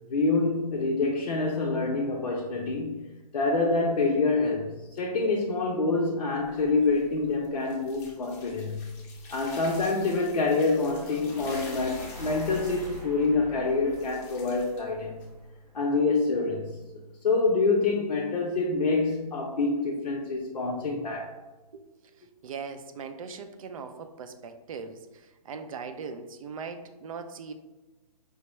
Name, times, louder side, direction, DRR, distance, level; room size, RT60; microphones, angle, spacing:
voice 1, 0.1-3.1 3.3-8.9 9.3-15.2 15.7-16.8 17.2-21.3, left 3 dB, 85° left, -2 dB, 0.6 m, -26 dB
sound 1, 6.3-15.5, left 3 dB, 25° left, 0.5 m, -48 dB
sound 2, 11.2-16.3, equal, 80° right, 0.9 m, -44 dB
voice 2, 22.4-27.5, right 5 dB, 60° right, 8 dB, 0.4 m, -40 dB
4.6 x 2.1 x 3.0 m, 1.1 s
hypercardioid pair, 145°, 20 cm